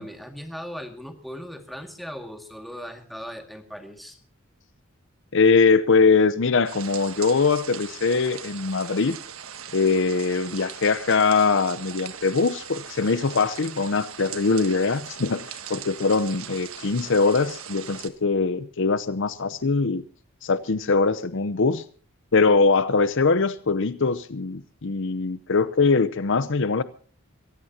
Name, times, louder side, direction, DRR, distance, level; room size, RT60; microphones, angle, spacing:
voice 1, 0.0-4.2, equal, ahead, 2.1 m, -38 dB
voice 2, 5.3-9.2 9.7-20.0 20.4-21.8 22.3-26.8, left 4 dB, 60° left, 0.7 m, -22 dB
sound 1, 6.6-18.1, right 8 dB, 75° right, 1.5 m, -39 dB
23.5 x 16.0 x 2.9 m
head